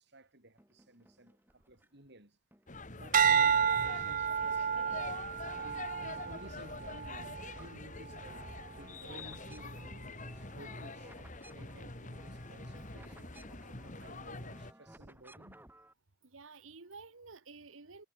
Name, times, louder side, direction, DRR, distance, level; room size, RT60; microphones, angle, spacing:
voice 1, 0.0-2.4 2.9-8.4 8.8-15.6, right 1 dB, 60° right, 6.0 m, -56 dB
sound 1, 0.6-2.1 2.5-4.1 4.4-5.7 6.0-15.9, right 1 dB, 10° right, 7.0 m, -60 dB
sound 2, 2.7-14.7, left 2 dB, 40° left, 2.9 m, -45 dB
sound 3, 3.1-7.6 8.2-8.6, right 7 dB, 40° right, 0.6 m, -31 dB
voice 2, 16.3-18.0, right 4 dB, 85° right, 1.5 m, -51 dB
head